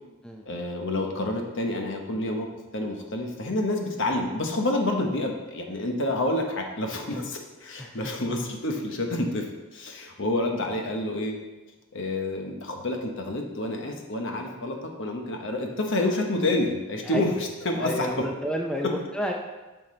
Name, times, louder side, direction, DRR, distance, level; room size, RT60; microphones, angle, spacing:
voice 1, 0.5-2.5 2.7-9.5 9.7-11.4 11.9-18.2 18.8-18.9, left 1 dB, 60° left, 2 dB, 1.0 m, -28 dB
voice 2, 17.8-19.3, equal, 5° left, 0 dB, 0.5 m, -30 dB
8.9 x 5.8 x 3.2 m, 1.1 s
head